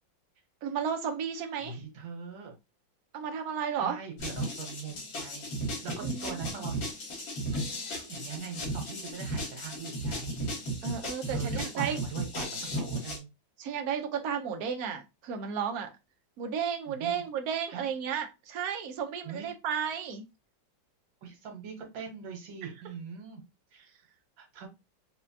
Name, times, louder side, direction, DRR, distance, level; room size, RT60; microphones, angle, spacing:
voice 1, 0.6-1.8 3.1-4.0 6.0-6.6 10.8-12.0 13.6-15.9 16.4-20.2, right 7 dB, 65° right, 1.0 m, -33 dB
voice 2, 1.6-2.5 3.7-5.5 5.8-7.0 7.5-10.4 11.3-13.3 16.9-17.2 17.7-17.9 19.2-19.5 21.2-23.4 23.7-23.9 24.4-24.7, right 6 dB, 90° right, 1.9 m, -42 dB
sound 1, 4.2-13.2, right 1 dB, 75° left, 2.1 m, -35 dB
4.3 x 2.3 x 2.7 m
omnidirectional pair, 2.1 m